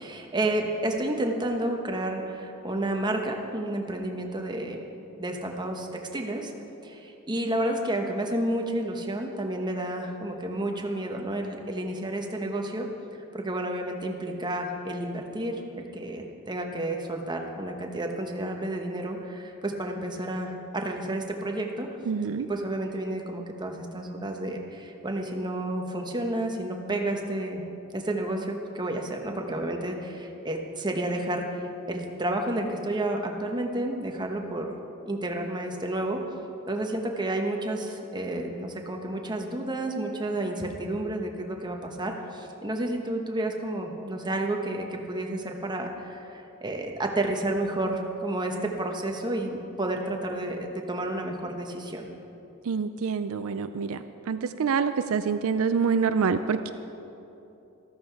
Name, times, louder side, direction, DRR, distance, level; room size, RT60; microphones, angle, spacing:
voice 1, 0.0-4.8 5.2-6.5 6.8-12.9 13.3-22.0 22.4-27.6 27.9-34.7 35.0-36.3 36.7-52.1, right 1 dB, 20° right, 2 dB, 1.1 m, -31 dB
voice 2, 22.1-22.5 52.7-56.7, right 5 dB, 70° right, 10 dB, 0.4 m, -26 dB
14.0 x 13.5 x 4.7 m, 3.0 s
head